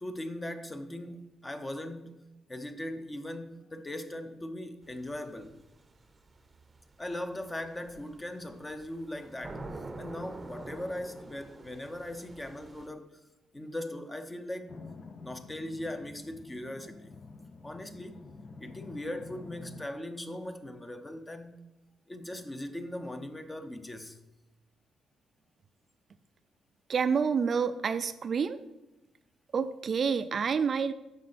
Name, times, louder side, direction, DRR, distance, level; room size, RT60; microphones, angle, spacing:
voice 1, 0.0-5.6 7.0-9.6 10.0-13.2 13.5-14.8 15.2-17.1 17.6-18.2 18.6-21.6 22.1-24.2, left 1 dB, 15° left, 8 dB, 0.8 m, -39 dB
sound 1, 4.8-12.9, right 2 dB, 25° right, 0.8 m, -47 dB
sound 2, 14.7-19.9, left 4 dB, 40° left, 0.6 m, -48 dB
voice 2, 26.9-28.6 29.5-30.9, right 6 dB, 45° right, 11 dB, 0.4 m, -28 dB
9.2 x 6.4 x 4.2 m, 0.98 s
cardioid pair, 90°, 0 cm